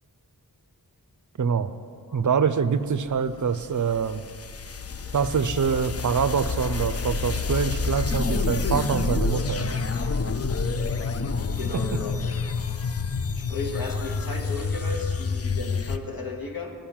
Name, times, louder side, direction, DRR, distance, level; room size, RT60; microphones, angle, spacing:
voice 1, 1.4-1.7 2.1-4.2 5.1-9.7 11.7-11.8, right 6 dB, 55° right, 13 dB, 0.5 m, -25 dB
sound 1, 3.1-16.0, left 4 dB, 40° left, 0.5 m, -28 dB
voice 2, 11.5-12.2 13.3-16.7, left 3 dB, 65° left, 1 dB, 1.2 m, -34 dB
10.0 x 5.3 x 7.2 m, 2.3 s
wide cardioid pair, 40°, 37 cm